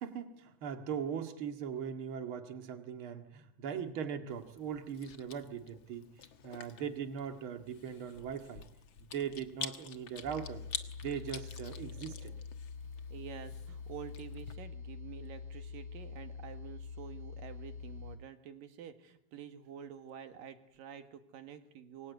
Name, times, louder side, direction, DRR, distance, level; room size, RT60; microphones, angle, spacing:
voice 1, 0.0-8.7 9.0-10.6 11.0-12.3, right 8 dB, 40° right, 8 dB, 2.4 m, -40 dB
Chewing mastication, 4.3-14.5, left 8 dB, 50° left, 1.5 m, -48 dB
sound 1, 10.2-18.2, left 5 dB, 10° left, 5.9 m, -45 dB
voice 2, 13.1-22.1, right 8 dB, 75° right, 9 dB, 3.5 m, -49 dB
26.0 x 23.0 x 9.6 m, 0.81 s
omnidirectional pair, 4.0 m